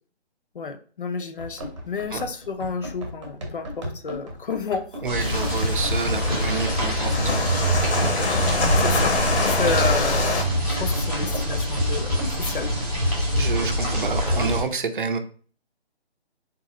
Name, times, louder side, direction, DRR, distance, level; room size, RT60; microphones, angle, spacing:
voice 1, 0.5-5.0 8.8-10.4 10.7-12.8, left 5 dB, 55° left, 9 dB, 0.6 m, -31 dB
Run, 1.4-13.1, equal, 25° right, 0.9 m, -36 dB
voice 2, 5.0-7.5 13.4-15.2, right 4 dB, 50° right, 8 dB, 0.6 m, -28 dB
sound 1, 5.1-14.6, equal, 5° left, 0.8 m, -24 dB
sound 2, 5.2-10.4, left 3 dB, 80° left, 1.1 m, -26 dB
3.7 x 2.9 x 4.2 m, 0.43 s
hypercardioid pair, 170°, 33 cm